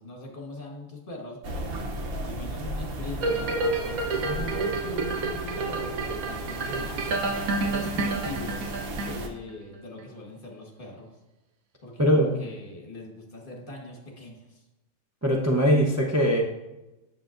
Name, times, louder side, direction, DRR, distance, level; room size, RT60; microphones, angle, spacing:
voice 1, 0.0-1.7 2.2-11.1 11.8-14.7, left 2 dB, 40° left, 0 dB, 1.6 m, -41 dB
sound 1, 1.4-9.3, right 2 dB, 50° right, 0.8 m, -35 dB
sound 2, 3.2-9.5 10.0-10.1, right 3 dB, 75° right, 1.2 m, -29 dB
voice 2, 12.0-12.4 15.2-16.4, equal, 20° right, -2 dB, 0.4 m, -21 dB
9.2 x 6.9 x 2.5 m, 1.0 s
omnidirectional pair, 1.5 m